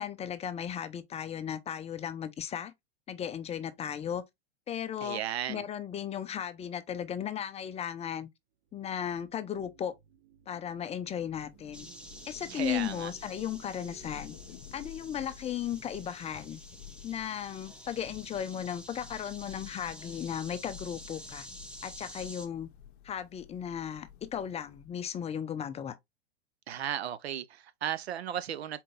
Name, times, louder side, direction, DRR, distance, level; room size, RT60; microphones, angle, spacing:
voice 1, 0.0-2.7 3.1-4.2 4.7-5.2 5.5-8.3 8.7-9.9 10.5-11.9 12.3-14.3 14.7-16.6 17.0-21.5 21.8-22.7 23.0-26.0, left 9 dB, 20° left, 0.5 m, -36 dB
voice 2, 5.0-5.6 12.5-13.1 26.7-28.8, right 10 dB, 80° right, 0.7 m, -35 dB
sound 1, 8.7-17.0, right 10 dB, 50° right, 1.1 m, -59 dB
Thunder / Rain, 11.1-25.2, left 10 dB, 55° left, 0.7 m, -52 dB
sound 2, 11.7-22.5, equal, 5° right, 0.9 m, -49 dB
4.4 x 3.8 x 2.5 m
hypercardioid pair, 100°, 32 cm